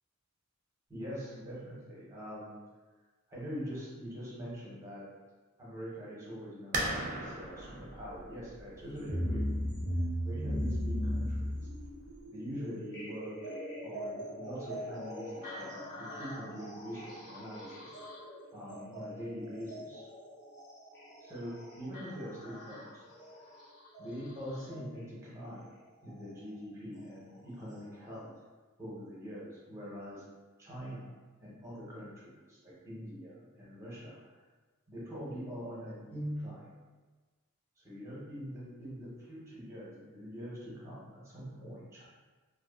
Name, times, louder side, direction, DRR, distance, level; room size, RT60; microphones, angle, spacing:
voice 1, 0.9-2.6 3.3-5.1 5.6-9.7 10.2-11.6 12.3-13.4 13.8-20.1 21.2-23.5 24.0-28.4 28.8-30.2 30.6-34.4 34.9-36.8 37.8-42.1, equal, 15° right, -7 dB, 0.7 m, -43 dB
sound 1, 6.7-12.2, right 1 dB, 40° right, 0.4 m, -40 dB
sound 2, 8.9-24.8 26.1-26.2 26.9-27.0 27.7-27.8, equal, 50° left, 0.8 m, -39 dB
2.4 x 2.3 x 2.3 m, 1.3 s
head